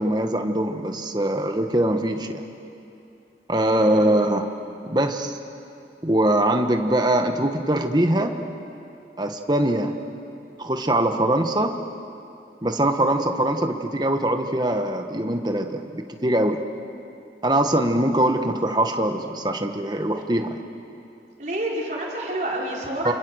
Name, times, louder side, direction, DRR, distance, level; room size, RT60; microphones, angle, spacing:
voice 1, 0.0-2.4 3.5-4.5 4.8-5.4 6.0-8.3 9.2-9.9 10.6-11.7 12.6-16.6 17.4-20.6 23.0-23.1, right 1 dB, 25° right, 6 dB, 1.4 m, -22 dB
voice 2, 3.5-4.1 21.4-23.1, right 1 dB, 45° right, -4 dB, 4.9 m, -29 dB
29.0 x 28.5 x 6.5 m, 2.8 s
head